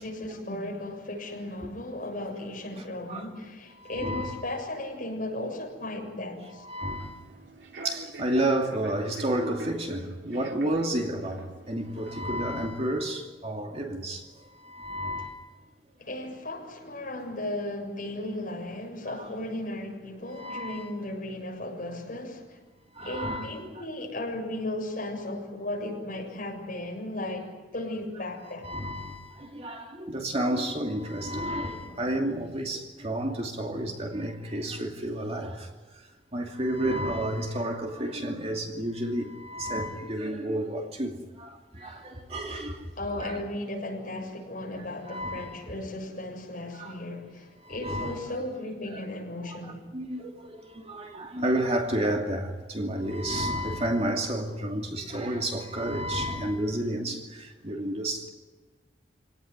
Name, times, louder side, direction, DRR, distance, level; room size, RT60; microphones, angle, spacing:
voice 1, 0.0-6.6 16.0-22.6 23.0-28.7 43.0-49.9, left 1 dB, 50° left, 7.1 m, -36 dB
voice 2, 3.8-4.4 6.6-7.2 7.8-15.5 19.2-19.3 20.3-20.9 22.9-23.5 23.8-23.9 28.6-35.7 36.3-43.4 45.1-45.6 46.8-47.0 47.6-48.2 49.6-58.3, right 1 dB, 35° right, 2.6 m, -31 dB
Human voice / Subway metro underground, 6.8-12.3, right 2 dB, 85° right, 2.6 m, -43 dB
26.5 x 18.5 x 9.8 m
head